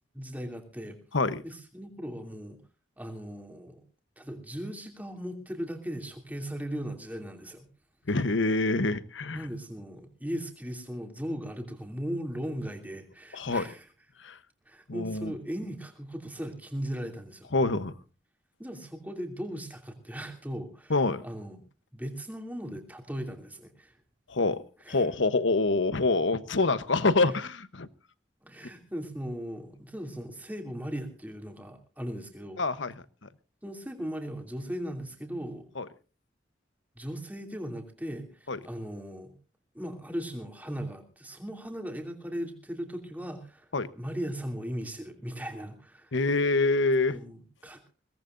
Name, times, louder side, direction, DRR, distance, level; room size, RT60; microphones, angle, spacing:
voice 1, 0.1-1.0 1.4-2.6 3.0-3.8 4.2-7.7 9.3-13.9 14.7-17.5 18.6-21.6 21.9-24.0 24.8-25.1 28.4-32.6 33.6-35.7 36.9-39.3 39.7-43.7 43.9-46.2 47.1-47.9, equal, 10° right, 2.8 m, -38 dB
voice 2, 8.1-9.4 13.3-13.7 14.2-14.4 14.9-15.3 17.5-17.9 20.9-21.2 24.3-24.6 24.9-27.9 32.6-32.9 33.2-33.3 35.8-35.9 38.5-38.6 43.7-43.9 46.1-47.2, left 3 dB, 80° left, 1.0 m, -26 dB
22.5 x 18.0 x 2.6 m
head